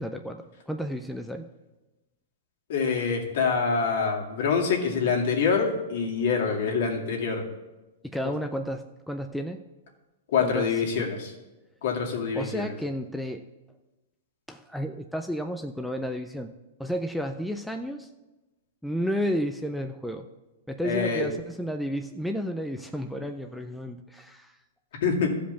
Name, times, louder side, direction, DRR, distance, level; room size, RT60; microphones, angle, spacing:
voice 1, 0.0-1.5 8.0-9.6 10.4-11.1 12.3-13.4 14.5-16.5 16.8-18.1 18.8-20.3 20.7-24.6, equal, ahead, 5 dB, 0.4 m, -32 dB
voice 2, 2.7-7.4 10.3-11.3 11.8-12.7 20.8-21.3 25.0-25.3, left 5 dB, 60° left, 0 dB, 2.3 m, -25 dB
13.5 x 5.1 x 6.8 m, 1.1 s
hypercardioid pair, 155°, 0 cm